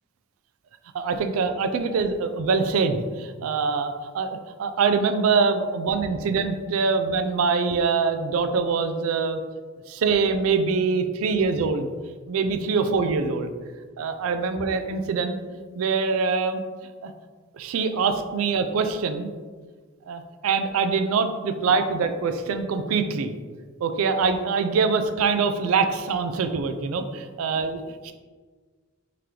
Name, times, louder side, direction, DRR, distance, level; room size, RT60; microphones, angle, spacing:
voice 1, 0.9-9.4 9.9-11.9 12.3-13.5 14.0-15.4 15.7-16.6 17.0-17.1 17.5-19.3 20.1-23.3 23.8-28.1, right 5 dB, 80° right, 8 dB, 0.3 m, -24 dB
3.7 x 3.2 x 2.9 m, 1.5 s
head